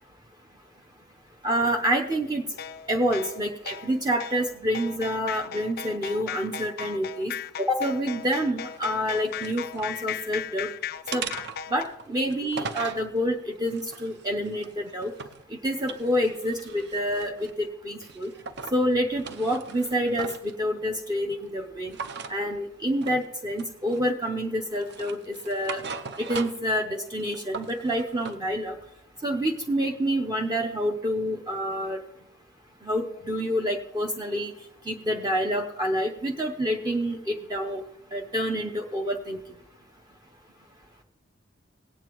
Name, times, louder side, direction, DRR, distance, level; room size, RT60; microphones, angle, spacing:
voice 1, 1.4-2.4 2.9-7.3 7.6-10.7 11.1-11.3 11.7-15.1 15.6-18.3 18.7-22.0 22.3-25.8 26.2-28.8 29.2-32.0 32.8-34.5 34.9-37.8 38.1-39.4, equal, 20° right, 1 dB, 0.7 m, -27 dB
sound 1, 2.6-11.8, left 9 dB, 50° left, 0.3 m, -37 dB
sound 2, 8.7-9.9 10.3-10.7 11.1-13.1 13.6-15.4 15.8-17.6 18.0-18.8 19.1-20.5 21.9-22.4 23.0-23.3 23.6-24.3 24.7-26.7 27.1-28.4, right 5 dB, 55° right, 0.6 m, -39 dB
18.0 x 8.9 x 3.0 m, 0.84 s
head